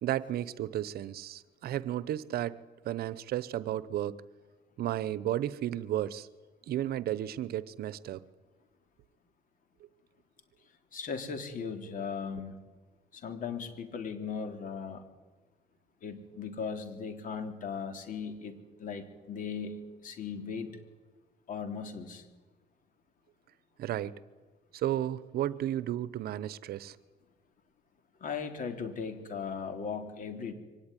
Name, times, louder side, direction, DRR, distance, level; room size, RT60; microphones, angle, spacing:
voice 1, 0.0-2.6 2.8-4.2 4.8-6.3 6.7-8.2 23.8-24.1 24.7-27.0, right 12 dB, 65° right, 17 dB, 1.0 m, -33 dB
voice 2, 10.9-12.6 13.1-15.0 16.0-20.7 21.5-22.2 28.2-30.5, left 6 dB, 50° left, 7 dB, 3.5 m, -38 dB
24.0 x 18.0 x 10.0 m, 1.3 s
cardioid pair, 110°, 17 cm